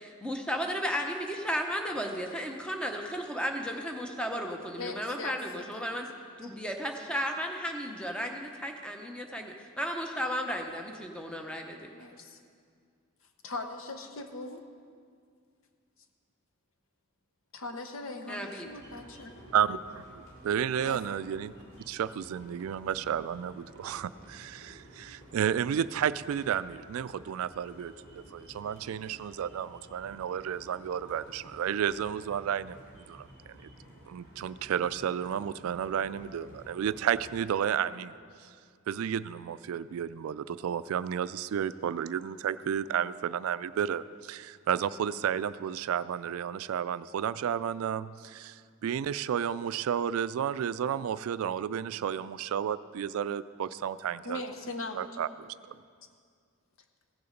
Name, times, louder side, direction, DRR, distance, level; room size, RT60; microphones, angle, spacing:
voice 1, 0.0-6.1 6.4-11.9 18.3-18.7, equal, 5° left, 3 dB, 0.7 m, -34 dB
voice 2, 4.8-5.9 6.5-6.6 11.9-12.4 13.4-14.6 17.5-19.4 20.8-21.2 54.2-55.3, left 2 dB, 70° left, 5 dB, 0.8 m, -40 dB
sound 1, 18.6-37.4, equal, 55° left, 2.6 m, -53 dB
voice 3, 19.5-21.5 21.9-33.7 34.1-38.1 38.9-54.4 55.0-55.8, right 8 dB, 80° right, 17 dB, 0.3 m, -32 dB
15.5 x 6.9 x 5.1 m, 2.1 s
head